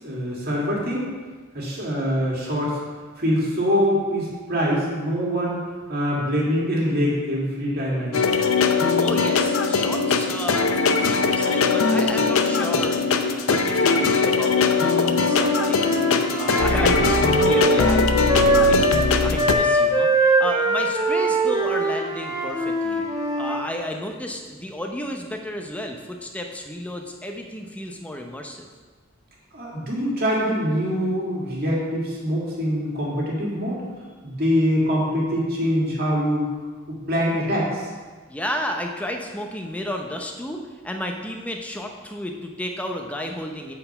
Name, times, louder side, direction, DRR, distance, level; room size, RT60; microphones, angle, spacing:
voice 1, 0.0-1.1 1.5-2.7 3.2-5.6 5.9-8.3 18.9-19.0 29.5-33.8 34.2-36.5 37.1-37.9, equal, 50° right, -4 dB, 1.9 m, -24 dB
sound 1, 8.1-19.5, left 4 dB, 85° left, 0.5 m, -20 dB
voice 2, 9.0-13.0 13.5-16.0 16.4-18.1 18.4-23.0 23.4-28.7 34.3-34.4 38.3-43.7, left 1 dB, 5° left, 3 dB, 0.6 m, -32 dB
Wind instrument woodwind instrument, 15.2-19.1 19.3-23.7, right 1 dB, 15° right, 1.0 m, -22 dB
7.6 x 4.5 x 5.4 m, 1.4 s
head